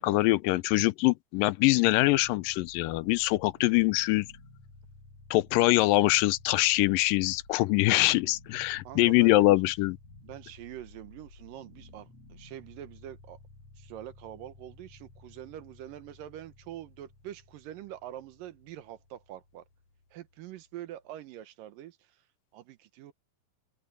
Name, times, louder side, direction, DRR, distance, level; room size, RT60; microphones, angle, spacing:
voice 1, 0.0-4.3 5.3-10.0, left 19 dB, 90° left, 2.3 m, -24 dB
sound 1, 2.0-21.0, left 2 dB, 50° left, 8.2 m, -54 dB
voice 2, 8.8-9.4 10.2-13.4 13.8-19.6 20.1-22.0 22.5-23.1, right 12 dB, 80° right, 2.7 m, -45 dB
open air
omnidirectional pair, 3.9 m